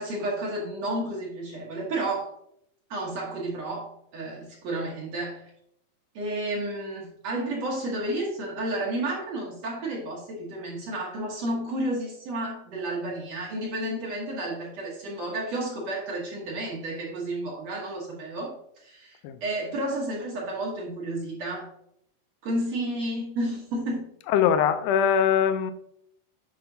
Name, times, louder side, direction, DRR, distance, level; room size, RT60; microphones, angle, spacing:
voice 1, 0.0-2.3 2.9-5.5 6.2-18.6 18.8-21.7 22.4-24.1, right 1 dB, 60° right, 2.1 m, -31 dB
voice 2, 24.3-25.7, left 8 dB, 80° left, 2.0 m, -22 dB
8.6 x 5.8 x 2.7 m
omnidirectional pair, 4.0 m